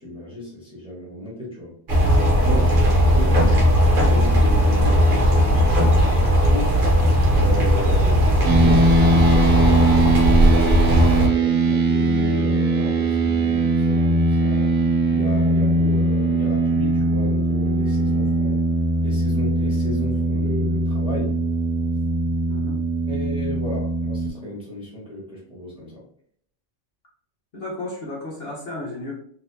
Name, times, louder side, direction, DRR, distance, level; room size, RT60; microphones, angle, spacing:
voice 1, 0.0-1.7 2.3-3.6 3.8-6.8 7.3-10.6 11.2-14.7 15.0-18.6 19.0-21.4 23.1-26.0, left 1 dB, 5° right, -6 dB, 1.0 m, -34 dB
sound 1, 1.9-11.3, equal, 50° right, 0.7 m, -17 dB
sound 2, 8.4-24.3, right 2 dB, 75° right, 1.0 m, -20 dB
voice 2, 22.5-22.8 27.5-29.2, left 2 dB, 50° left, -5 dB, 1.0 m, -33 dB
3.9 x 2.6 x 2.6 m, 0.63 s
omnidirectional pair, 1.5 m